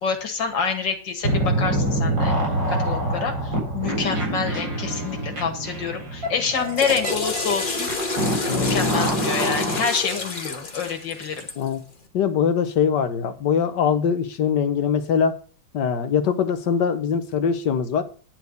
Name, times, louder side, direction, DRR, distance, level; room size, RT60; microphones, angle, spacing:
voice 1, 0.0-2.3 2.7-7.9 8.5-11.5, left 5 dB, 90° left, 4 dB, 2.5 m, -27 dB
sound 1, 1.2-9.8, right 1 dB, 85° right, 4.9 m, -26 dB
Water / Toilet flush, 6.5-11.7, left 3 dB, 30° left, 1.4 m, -28 dB
voice 2, 12.1-15.3 15.7-18.0, left 7 dB, 75° left, 9 dB, 1.7 m, -22 dB
11.0 x 4.5 x 8.0 m, 0.39 s
omnidirectional pair, 1.9 m